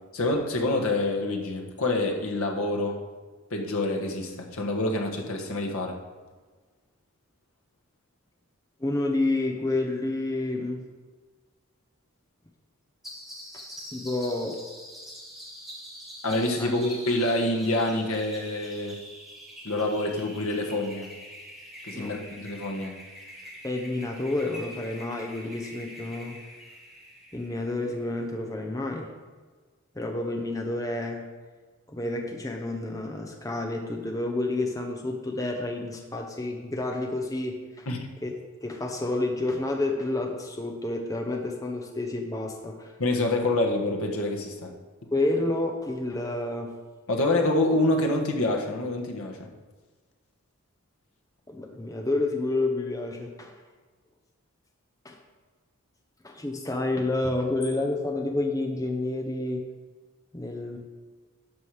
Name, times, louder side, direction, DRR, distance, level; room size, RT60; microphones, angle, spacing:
voice 1, 0.1-3.0 3.5-6.0 16.2-19.0 19.6-21.2 21.8-23.0 37.9-38.0 43.0-44.7 47.1-49.5, left 2 dB, 75° left, 1 dB, 1.4 m, -27 dB
voice 2, 8.8-10.8 13.9-14.6 16.6-16.7 21.9-22.1 23.6-26.4 27.3-29.1 29.9-31.3 31.9-37.9 38.2-38.3 38.6-42.9 45.1-46.7 51.5-53.5 55.0-55.2 56.2-59.7 60.3-60.8, left 2 dB, 15° left, 2 dB, 0.8 m, -29 dB
sound 1, 13.0-28.3, equal, ahead, 1.5 m, -45 dB
11.0 x 6.1 x 4.9 m, 1.4 s
head